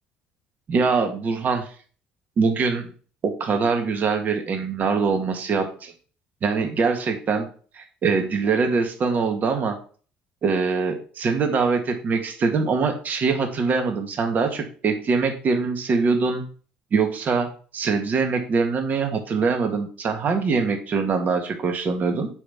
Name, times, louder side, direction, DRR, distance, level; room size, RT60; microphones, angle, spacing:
voice 1, 0.7-1.6 2.4-2.9 3.2-5.9 6.4-7.5 7.7-9.8 10.4-16.5 16.9-22.3, right 4 dB, 45° right, 5 dB, 1.8 m, -23 dB
8.3 x 3.5 x 5.7 m, 0.41 s
supercardioid pair, 75°, 4 cm